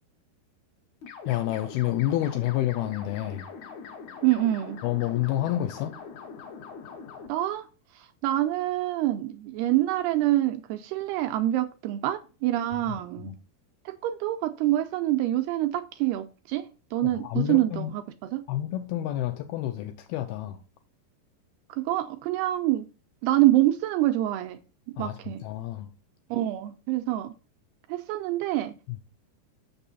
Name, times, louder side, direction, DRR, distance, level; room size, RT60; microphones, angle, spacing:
sound 1, 1.0-7.3, left 6 dB, 65° left, 1.9 m, -43 dB
voice 1, 1.3-3.5 4.8-5.9 12.9-13.4 17.2-17.9 18.5-20.6 25.0-25.9 28.9-29.0, left 14 dB, 85° left, 2.3 m, -29 dB
voice 2, 4.2-4.8 7.3-7.7 8.2-13.3 13.9-18.4 21.7-22.9 23.2-24.6 25.0-25.4 26.3-27.3 27.9-28.7, right 15 dB, 85° right, 2.3 m, -26 dB
6.9 x 6.1 x 4.0 m
omnidirectional pair, 4.9 m